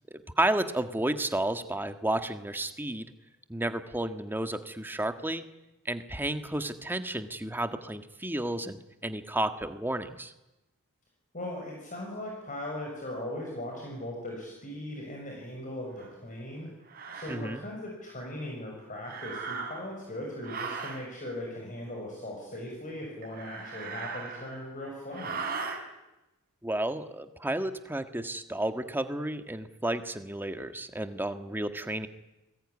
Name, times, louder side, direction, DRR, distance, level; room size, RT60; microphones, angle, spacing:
voice 1, 0.1-3.1 3.5-5.4 5.8-10.3 17.3-17.6 26.6-32.1, right 1 dB, 10° right, 8 dB, 1.6 m, -32 dB
voice 2, 11.3-16.7 17.1-25.4, left 1 dB, 35° left, -1 dB, 6.9 m, -39 dB
sound 1, 16.0-16.1 16.9-17.4 19.0-20.0 20.4-21.0 23.2-24.7 25.1-25.8, right 5 dB, 45° right, 4.7 m, -38 dB
29.0 x 21.0 x 9.8 m, 0.98 s
head